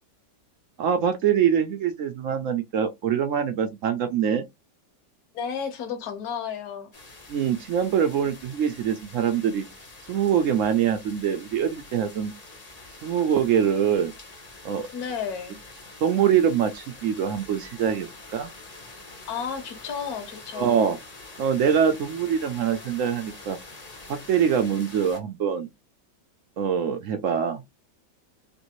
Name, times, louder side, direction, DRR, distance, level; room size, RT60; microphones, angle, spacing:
voice 1, 0.8-4.5 7.3-9.6 10.1-12.3 13.0-14.1 14.6-14.9 16.0-18.5 20.6-21.0 21.4-23.6 24.1-25.7 26.6-27.6, right 8 dB, 70° right, 0.7 m, -24 dB
voice 2, 5.3-6.9 14.9-15.6 19.3-20.8, left 7 dB, 65° left, 1.4 m, -32 dB
sound 1, 6.9-25.2, left 2 dB, 35° left, 0.6 m, -45 dB
3.3 x 2.7 x 2.9 m
omnidirectional pair, 1.8 m